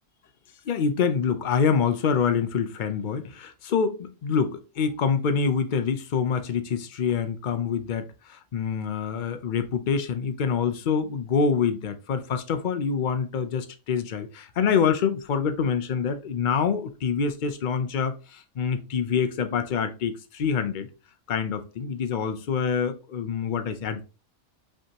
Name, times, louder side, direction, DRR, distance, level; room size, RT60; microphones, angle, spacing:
voice 1, 0.7-20.9 21.3-24.0, left 6 dB, 50° left, 0.6 m, -26 dB
5.3 x 3.5 x 2.8 m
omnidirectional pair, 1.2 m